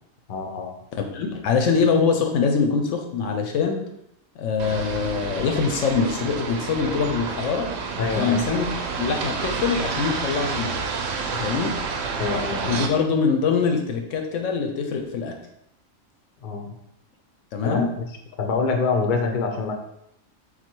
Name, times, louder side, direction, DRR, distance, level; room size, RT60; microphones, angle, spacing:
voice 1, 0.3-0.8 8.0-8.4 11.4-11.5 12.2-12.8 16.4-16.7 17.6-18.1 18.4-19.7, left 4 dB, 55° left, 3 dB, 0.6 m, -25 dB
voice 2, 1.1-3.8 4.4-7.7 8.2-8.7 9.0-10.8 11.3-11.7 12.6-15.3 17.5-17.9, left 5 dB, 75° left, 4 dB, 0.9 m, -23 dB
sound 1, 4.6-12.9, right 5 dB, 65° right, 0.7 m, -29 dB
4.1 x 2.3 x 4.4 m, 0.77 s
omnidirectional pair, 1.4 m